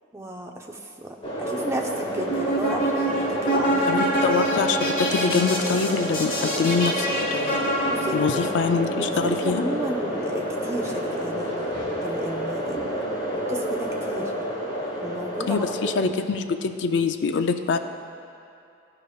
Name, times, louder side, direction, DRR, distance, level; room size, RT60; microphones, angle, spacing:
voice 1, 0.1-4.0 7.9-8.5 9.0-11.7 12.0-12.8 13.3-14.3 15.0-16.1, right 1 dB, 15° right, 1 dB, 0.4 m, -33 dB
sound 1, 1.2-15.9, equal, 30° left, 1.4 m, -29 dB
sound 2, 2.1-8.5, right 1 dB, 45° left, 1.1 m, -26 dB
voice 2, 3.9-7.7 8.1-9.6 15.5-17.8, left 5 dB, 65° left, 8 dB, 0.3 m, -24 dB
13.0 x 4.9 x 2.3 m, 2.6 s
head